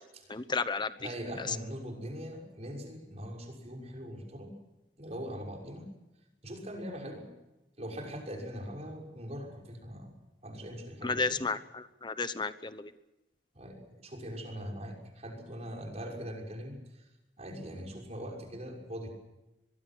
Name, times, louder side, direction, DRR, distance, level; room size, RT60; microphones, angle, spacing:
voice 1, 0.3-0.9 1.4-1.6 11.0-12.9, left 4 dB, 25° left, 12 dB, 1.0 m, -32 dB
voice 2, 1.0-4.5 5.0-5.9 6.4-7.3 7.8-10.1 10.4-11.4 13.5-16.8 17.4-19.1, equal, 40° right, 2 dB, 6.3 m, -41 dB
24.5 x 22.0 x 6.2 m, 0.96 s
head